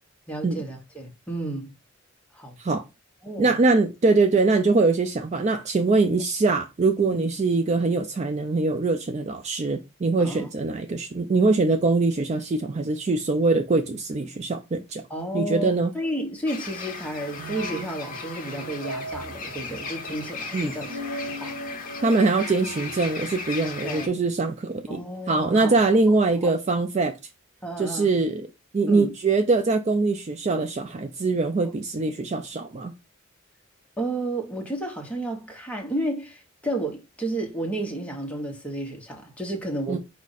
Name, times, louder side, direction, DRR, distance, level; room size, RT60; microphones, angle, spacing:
voice 1, 0.3-1.7 2.3-2.6 3.2-3.5 7.1-7.3 10.2-10.5 15.1-21.6 23.8-24.1 24.9-25.7 26.1-26.2 26.4-26.5 27.6-28.1 28.9-29.1 34.0-40.0, right 1 dB, 5° left, 1.0 m, -32 dB
voice 2, 3.4-15.0 15.3-15.9 20.5-20.7 22.0-27.1 27.8-28.5 28.7-32.9 39.9-40.0, right 3 dB, 35° right, 0.4 m, -23 dB
sound 1, 16.5-24.1, left 4 dB, 40° left, 0.8 m, -37 dB
sound 2, 17.4-23.0, right 1 dB, 80° right, 0.7 m, -38 dB
4.8 x 2.5 x 4.0 m
head